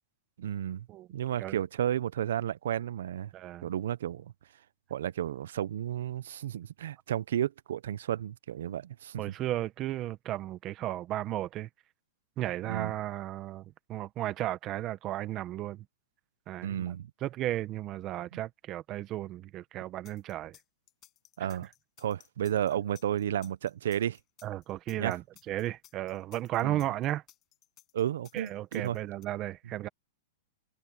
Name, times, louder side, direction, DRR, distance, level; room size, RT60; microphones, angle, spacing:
voice 1, 0.4-3.3 3.6-4.3 4.9-9.2 12.7-12.9 16.6-17.1 18.3-18.4 21.4-21.7 22.0-24.2 25.0-25.2 26.6-26.8 27.9-29.0, right 10 dB, 70° right, 0.6 m, -32 dB
voice 2, 3.3-3.7 9.2-11.7 12.4-15.8 16.5-16.8 17.2-20.6 24.4-27.2 28.3-29.9, right 14 dB, 25° right, 0.9 m, -34 dB
sound 1, 20.0-29.3, left 14 dB, 25° left, 5.8 m, -58 dB
supercardioid pair, 165°, 0 cm